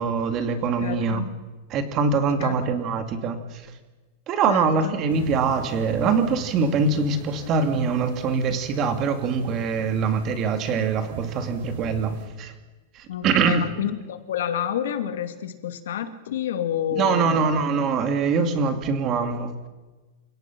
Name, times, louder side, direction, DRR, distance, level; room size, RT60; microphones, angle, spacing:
voice 1, 0.0-1.2 1.7-3.6 4.3-12.5 12.9-13.7 16.9-19.5, right 5 dB, 30° right, 8 dB, 2.4 m, -23 dB
voice 2, 0.8-1.3 2.4-2.7 4.5-4.9 13.1-17.5, left 10 dB, 80° left, 9 dB, 2.3 m, -29 dB
sound 1, 5.1-12.3, right 4 dB, 70° right, 6.6 m, -40 dB
29.5 x 17.5 x 6.1 m, 1.2 s
supercardioid pair, 165°, 0 cm